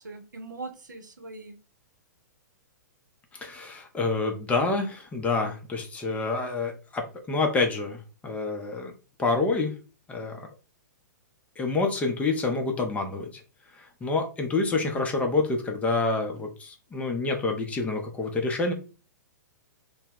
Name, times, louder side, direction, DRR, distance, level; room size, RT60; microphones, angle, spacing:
voice 1, 0.0-1.6, right 3 dB, 80° right, 5 dB, 0.7 m, -41 dB
voice 2, 3.3-8.9 9.2-9.7 10.1-10.4 11.6-13.3 13.7-18.7, left 3 dB, 15° left, 3 dB, 0.5 m, -27 dB
2.1 x 2.0 x 3.5 m, 0.34 s
figure-of-eight pair, 110°, 10 cm